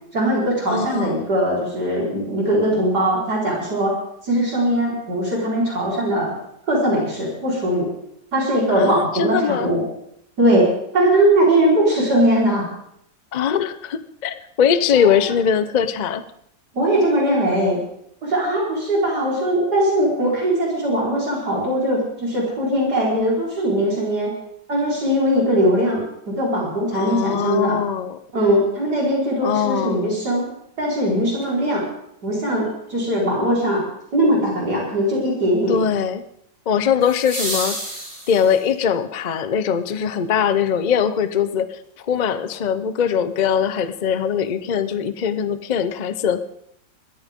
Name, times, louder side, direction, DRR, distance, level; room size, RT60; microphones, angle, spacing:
voice 1, 0.1-3.9 4.2-6.3 6.7-7.9 8.3-9.8 10.4-12.6 14.9-15.1 16.7-17.8 18.2-24.3 24.7-26.0 26.3-27.8 28.3-30.4 30.8-31.8 32.2-33.8 34.1-35.8, right 1 dB, 60° right, -4 dB, 5.0 m, -20 dB
voice 2, 0.7-1.3 8.7-9.7 13.3-16.2 26.9-28.2 29.4-30.1 35.7-36.2 36.7-37.8 38.3-46.4, left 7 dB, 80° left, 12 dB, 0.4 m, -21 dB
sound 1, 31.4-31.5 37.0-38.8 41.0-41.1, right 1 dB, 25° right, 4.0 m, -30 dB
21.5 x 14.0 x 3.7 m, 0.75 s
omnidirectional pair, 2.0 m